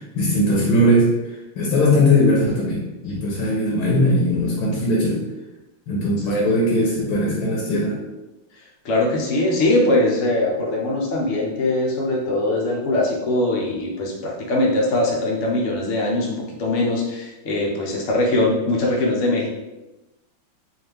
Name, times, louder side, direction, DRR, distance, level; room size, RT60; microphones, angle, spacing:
voice 1, 0.0-5.2 5.9-8.0, left 1 dB, 85° left, -4 dB, 1.7 m, -19 dB
voice 2, 8.8-19.5, left 1 dB, 65° left, -2 dB, 0.7 m, -21 dB
4.1 x 2.5 x 3.3 m, 1.0 s
omnidirectional pair, 2.3 m